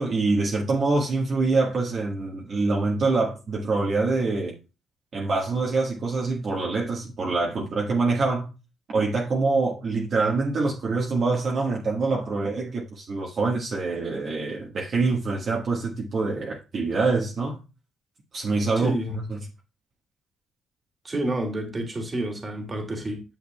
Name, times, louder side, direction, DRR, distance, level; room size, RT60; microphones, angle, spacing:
voice 1, 0.0-4.5 5.1-8.5 8.9-17.6 18.3-19.0 19.3-19.4, right 3 dB, 50° right, 1.5 m, -25 dB
voice 2, 18.8-19.2 21.0-23.2, right 1 dB, 30° right, 2.2 m, -29 dB
9.3 x 6.5 x 2.3 m
cardioid pair, 90°, 0 cm